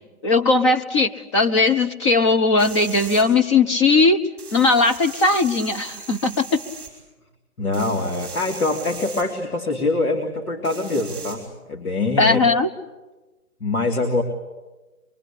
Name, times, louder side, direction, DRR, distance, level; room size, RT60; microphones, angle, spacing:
voice 1, 0.2-4.2 4.5-6.6 12.2-12.7, left 3 dB, 20° left, 7 dB, 0.9 m, -18 dB
sound 1, 2.6-3.2 4.4-6.9 7.7-9.2 10.6-11.4, right 5 dB, ahead, 5.5 m, -38 dB
voice 2, 7.6-12.4 13.6-14.2, left 2 dB, 80° left, 2 dB, 3.5 m, -24 dB
24.0 x 24.0 x 8.7 m, 1.2 s
hypercardioid pair, 155°, 44 cm